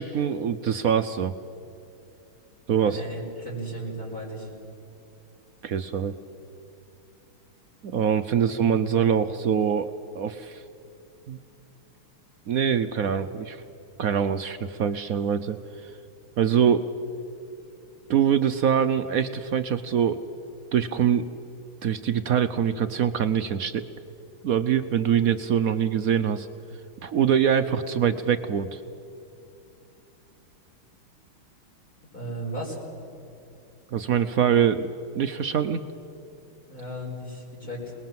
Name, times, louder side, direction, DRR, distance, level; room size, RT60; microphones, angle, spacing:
voice 1, 0.0-1.3 2.7-3.0 5.6-6.1 7.8-10.6 11.3-11.4 12.5-13.6 14.0-15.6 15.8-15.9 16.4-16.9 18.1-20.2 20.7-21.3 21.8-23.9 24.4-26.5 27.0-28.8 33.9-34.9 35.1-35.8, right 8 dB, 70° right, 10 dB, 0.8 m, -24 dB
voice 2, 2.8-4.5 8.4-8.7 32.1-32.8 36.7-37.9, right 1 dB, 40° left, -6 dB, 5.6 m, -35 dB
26.5 x 20.5 x 7.6 m, 2.7 s
omnidirectional pair, 2.3 m